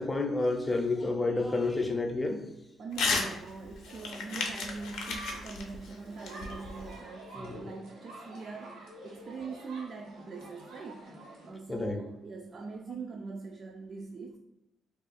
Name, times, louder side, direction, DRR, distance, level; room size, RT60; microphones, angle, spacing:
voice 1, 0.0-2.4 7.4-7.7 11.7-12.0, left 2 dB, 20° left, 3 dB, 0.5 m, -30 dB
voice 2, 2.8-11.2 11.4-14.4, right 4 dB, 50° right, 2 dB, 0.3 m, -42 dB
Crumpling crinkling / Tearing, 2.9-3.3 3.6-7.0, left 4 dB, 85° left, 0.5 m, -33 dB
sound 1, 3.8-11.5, right 2 dB, 85° right, 1.0 m, -48 dB
2.4 x 2.3 x 4.0 m, 0.97 s
cardioid pair, 90°, 0 cm